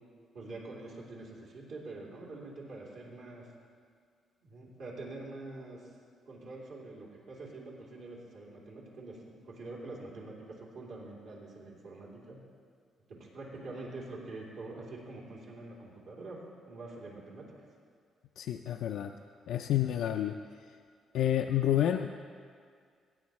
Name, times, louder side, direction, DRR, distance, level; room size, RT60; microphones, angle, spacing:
voice 1, 0.3-3.5 4.4-5.9 6.3-12.4 13.1-17.7, right 2 dB, 75° right, -4 dB, 2.9 m, -45 dB
voice 2, 18.4-19.1 19.5-20.4 21.1-22.2, left 11 dB, 80° left, 5 dB, 0.3 m, -29 dB
16.5 x 8.8 x 3.1 m, 2.1 s
cardioid pair, 90°, 0 cm